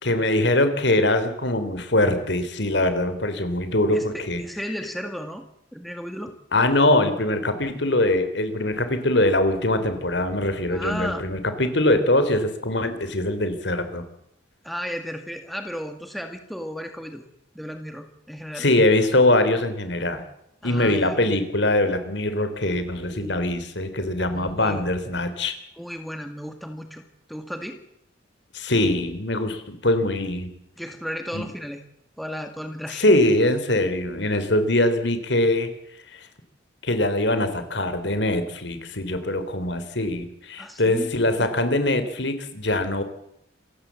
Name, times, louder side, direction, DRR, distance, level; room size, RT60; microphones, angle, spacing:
voice 1, 0.0-4.4 6.5-14.0 18.6-20.2 20.6-25.6 28.5-30.5 31.3-31.5 32.9-35.7 36.1-36.3 36.8-43.0, left 1 dB, 60° left, 10 dB, 3.5 m, -22 dB
voice 2, 3.9-6.3 10.7-11.2 14.6-17.2 17.6-18.7 20.6-21.2 23.0-23.4 24.3-24.9 25.8-27.0 27.3-27.8 30.8-31.8 32.2-33.0 40.6-41.1 41.4-41.5, equal, ahead, 6 dB, 1.8 m, -34 dB
27.5 x 15.5 x 7.5 m, 0.79 s
head